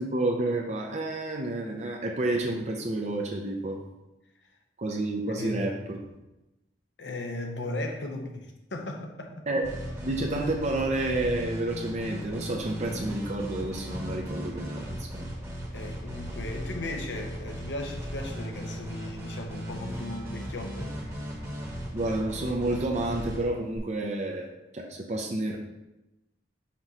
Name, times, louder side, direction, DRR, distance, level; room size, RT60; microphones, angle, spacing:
voice 1, 0.0-3.8 4.8-6.0 9.5-9.7 10.0-15.3 21.9-24.5 24.7-25.6, right 2 dB, 40° right, 1 dB, 0.6 m, -30 dB
voice 2, 5.4-5.7 7.0-9.3 15.7-21.1, left 2 dB, 80° left, 3 dB, 0.9 m, -37 dB
sound 1, 9.6-23.8, equal, 15° right, 1.2 m, -37 dB
5.8 x 3.0 x 5.4 m, 0.97 s
head